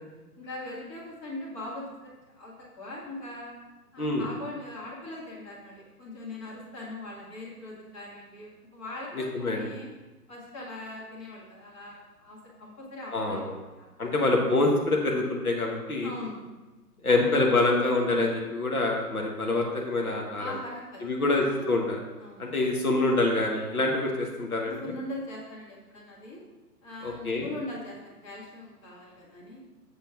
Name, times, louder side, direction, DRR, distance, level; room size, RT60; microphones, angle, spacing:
voice 1, 0.4-3.5 3.9-9.9 10.3-14.3 16.0-16.4 20.4-21.8 22.2-22.6 24.8-26.4 26.8-29.6, left 1 dB, 20° left, -5 dB, 1.8 m, -41 dB
voice 2, 4.0-4.3 9.1-9.6 13.1-13.5 14.0-16.1 17.0-20.5 21.0-22.0 22.4-24.8 27.0-27.5, left 2 dB, 65° left, 0 dB, 1.5 m, -26 dB
7.8 x 4.4 x 5.8 m, 1.2 s
figure-of-eight pair, 140°, 47 cm